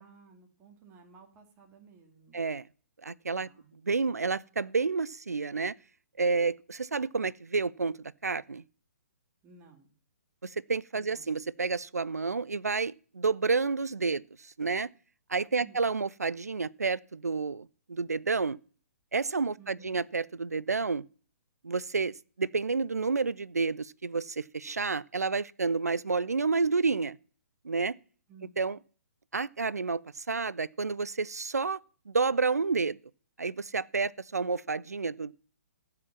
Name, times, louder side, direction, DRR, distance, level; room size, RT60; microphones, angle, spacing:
voice 1, 0.0-2.4 3.3-3.7 9.4-9.9 10.9-11.3 15.6-15.9 19.6-20.0 28.3-28.6, right 4 dB, 25° right, 2.3 m, -55 dB
voice 2, 2.3-2.7 3.0-3.5 3.8-5.7 6.2-8.6 10.4-14.9 15.3-18.6 19.1-21.0 21.6-27.2 27.6-28.0 28.6-28.8 29.3-31.8 32.1-33.0 33.4-35.3, right 4 dB, 80° right, 0.4 m, -30 dB
14.5 x 4.9 x 7.2 m
figure-of-eight pair, 125°, 8 cm